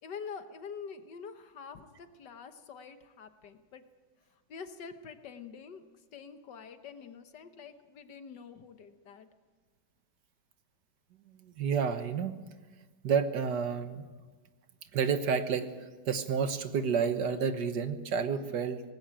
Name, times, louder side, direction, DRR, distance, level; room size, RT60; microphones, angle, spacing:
voice 1, 0.0-3.8 4.5-5.8 6.1-9.3, left 6 dB, 75° left, 9 dB, 1.8 m, -46 dB
voice 2, 11.6-12.4 13.0-14.0 14.9-15.7 16.0-18.8, right 6 dB, 70° right, 9 dB, 1.8 m, -30 dB
19.5 x 16.0 x 8.9 m, 1.3 s
omnidirectional pair, 1.9 m